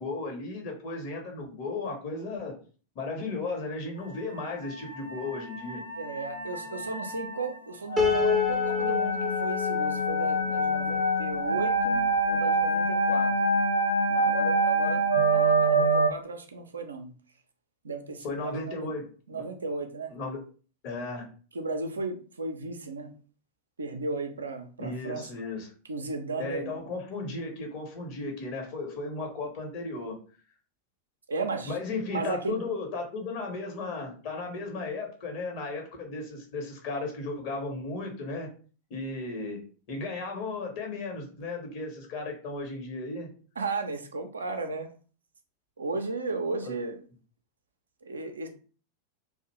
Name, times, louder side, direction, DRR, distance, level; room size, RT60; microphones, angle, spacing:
voice 1, 0.0-2.6 3.0-5.8 18.2-19.4 20.1-20.4 20.8-21.3 24.8-25.7 26.4-30.2 31.7-38.5 38.9-39.6 39.9-43.3 46.6-46.7, left 3 dB, 45° left, 2 dB, 0.8 m, -35 dB
sound 1, 4.1-16.1, right 1 dB, 80° left, 0.4 m, -26 dB
voice 2, 6.0-13.5 14.1-15.0 15.3-17.1 17.8-18.9 19.3-20.1 21.5-23.1 23.8-25.3 25.9-26.8 31.3-31.8 32.1-32.6 43.6-44.9 45.8-47.0 48.0-48.5, right 3 dB, 75° right, 6 dB, 0.4 m, -35 dB
Piano, 8.0-11.2, left 5 dB, 15° right, 0.5 m, -29 dB
2.5 x 2.1 x 2.9 m, 0.39 s
figure-of-eight pair, 90°, 0 cm